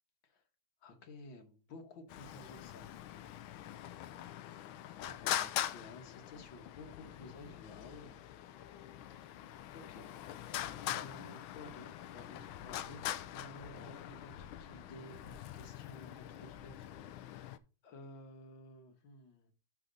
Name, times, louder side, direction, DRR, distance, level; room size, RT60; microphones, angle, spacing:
voice 1, 0.8-2.9 5.0-8.2 9.1-9.3 9.7-10.1 10.8-17.6 17.8-19.5, left 2 dB, 70° left, 1.9 m, -54 dB
Traffic noise roadway noise, 2.1-17.6, left 12 dB, 90° left, 1.4 m, -43 dB
11.5 x 4.2 x 3.8 m
omnidirectional pair, 2.2 m